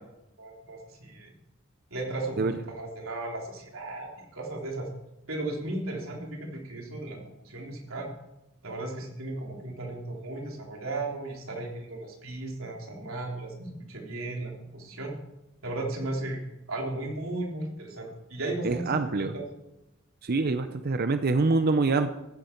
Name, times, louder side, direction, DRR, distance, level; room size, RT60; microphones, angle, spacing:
voice 1, 0.4-1.3 1.9-4.9 5.3-8.1 8.6-15.1 15.6-16.4 16.7-19.4, right 2 dB, 90° right, 0 dB, 3.3 m, -35 dB
voice 2, 18.6-19.3 20.2-22.2, right 3 dB, 50° right, 9 dB, 0.7 m, -25 dB
14.5 x 11.5 x 4.5 m, 0.93 s
head